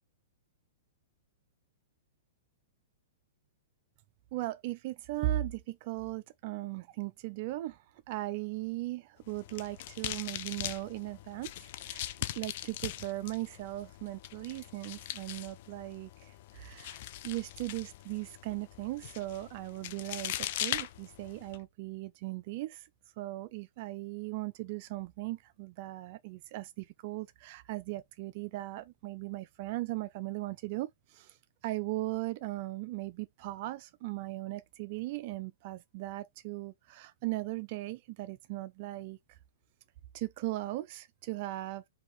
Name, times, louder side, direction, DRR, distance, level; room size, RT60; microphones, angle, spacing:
voice 1, 4.3-12.1 12.4-22.9 23.2-31.4 31.6-39.4 40.1-41.8, right 17 dB, 50° right, 0.3 m, -38 dB
sound 1, 9.2-21.6, left 13 dB, 55° left, 0.4 m, -41 dB
3.3 x 2.6 x 4.5 m
hypercardioid pair, 135°, 0 cm